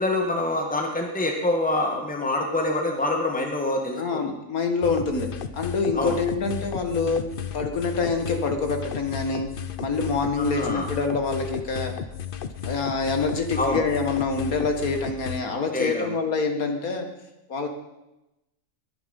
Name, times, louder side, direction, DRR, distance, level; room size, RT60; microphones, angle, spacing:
voice 1, 0.0-4.2 6.0-6.1 10.4-10.9 13.5-13.8 15.7-16.2, left 2 dB, 5° left, 1 dB, 1.9 m, -26 dB
voice 2, 4.0-7.2 7.5-9.5 9.8-11.9 12.6-17.1 17.5-17.7, left 4 dB, 80° left, 5 dB, 2.3 m, -26 dB
sound 1, 4.8-15.4, left 8 dB, 45° left, 0.8 m, -34 dB
21.0 x 11.0 x 5.5 m, 0.97 s
omnidirectional pair, 1.5 m